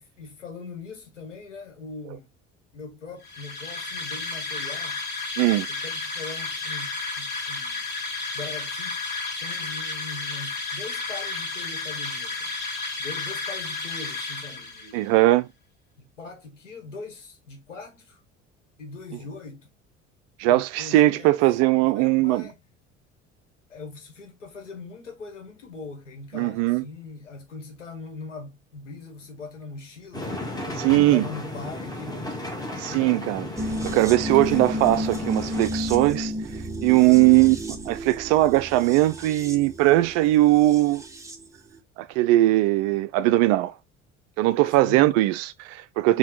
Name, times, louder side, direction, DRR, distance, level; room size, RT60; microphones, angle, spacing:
voice 1, 0.0-2.3 2.7-5.0 5.7-6.9 7.2-7.8 8.3-9.0 9.3-12.5 13.0-15.1 16.0-18.2 18.8-19.7 20.4-21.4 21.8-22.6 23.7-30.4 31.0-32.4 37.0-37.6 44.8-45.2, left 3 dB, 80° left, 1.1 m, -41 dB
sound 1, 3.2-15.0, left 3 dB, 30° left, 1.4 m, -32 dB
voice 2, 14.9-15.5 20.4-22.5 26.3-26.8 30.8-31.2 32.8-33.5 33.8-36.3 36.8-37.6 37.9-41.0 42.2-43.7 44.4-46.2, right 17 dB, 45° right, 0.4 m, -20 dB
sound 2, 30.1-35.7, left 1 dB, 10° left, 1.1 m, -34 dB
sound 3, 33.6-41.5 41.7-41.8, equal, 10° right, 0.7 m, -32 dB
4.3 x 2.3 x 3.8 m
figure-of-eight pair, 60°, 36 cm